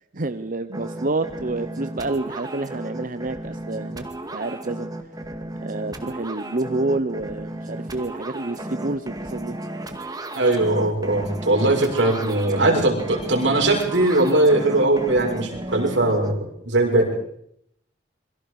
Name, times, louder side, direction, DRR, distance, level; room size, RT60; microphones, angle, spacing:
voice 1, 0.1-4.0 4.3-4.9 5.6-9.6, right 2 dB, 50° right, 10 dB, 0.9 m, -28 dB
sound 1, 0.7-16.3, right 1 dB, 20° right, 2.1 m, -34 dB
voice 2, 10.3-17.1, right 2 dB, 85° right, 1 dB, 6.3 m, -20 dB
27.5 x 23.0 x 4.9 m, 0.72 s
head